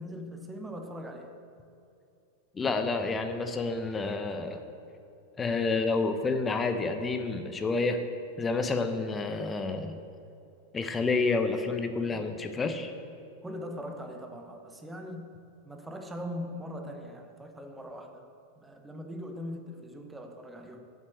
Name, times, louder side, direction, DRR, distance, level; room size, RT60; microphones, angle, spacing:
voice 1, 0.0-1.4 13.4-15.3 15.6-18.3 18.6-20.9, equal, 10° right, 5 dB, 1.0 m, -41 dB
voice 2, 2.5-4.6 5.4-8.0 8.4-10.0 10.7-12.9, left 3 dB, 15° left, 7 dB, 0.8 m, -29 dB
7.7 x 7.5 x 7.9 m, 2.7 s
figure-of-eight pair, 90°, 0 cm